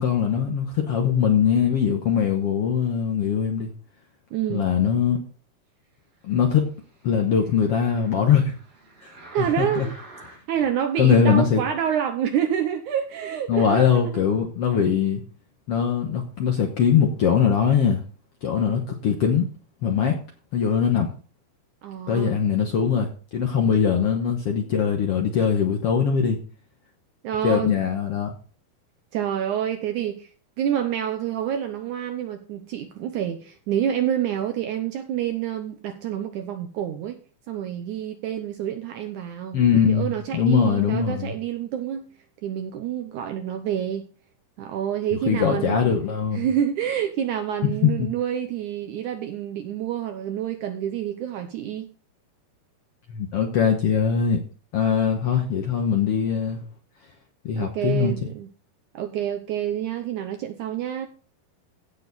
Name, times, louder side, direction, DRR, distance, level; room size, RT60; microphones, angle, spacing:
voice 1, 0.0-3.7 4.5-5.2 6.2-6.7 7.0-8.5 9.4-9.9 11.0-11.6 13.5-15.2 15.7-18.0 18.4-19.5 19.8-20.2 20.5-21.1 22.1-26.4 27.4-28.4 39.5-41.3 45.3-46.4 47.6-48.1 53.1-54.4 54.7-56.6 57.4-58.3, left 7 dB, 70° left, 1.4 m, -21 dB
voice 2, 4.3-4.7 9.3-9.9 10.5-14.2 18.6-18.8 21.8-22.4 27.2-27.8 29.1-30.3 30.6-37.2 37.5-39.6 39.9-42.1 42.4-44.0 44.6-45.9 46.3-51.9 57.6-58.5 58.9-61.1, right 10 dB, 75° right, 1.9 m, -28 dB
sound 1, 6.1-10.7 11.3-11.4, right 2 dB, 40° right, 5.9 m, -49 dB
15.5 x 6.8 x 4.1 m
omnidirectional pair, 4.4 m